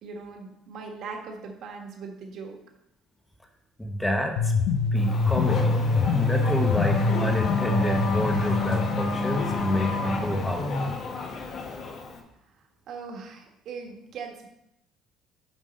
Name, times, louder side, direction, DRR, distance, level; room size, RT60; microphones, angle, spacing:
voice 1, 0.0-2.6 12.9-14.5, right 5 dB, 50° right, 2 dB, 1.4 m, -39 dB
voice 2, 3.8-4.5 4.9-5.8 6.1-10.8, equal, 5° left, 3 dB, 0.9 m, -29 dB
sound 1, 4.4-10.3, left 3 dB, 90° left, 0.5 m, -26 dB
Race car auto racing / Accelerating revving vroom, 5.0-12.2, left 3 dB, 40° left, 1.0 m, -29 dB
7.3 x 5.3 x 5.2 m, 0.80 s
cardioid pair, 175°, 0 cm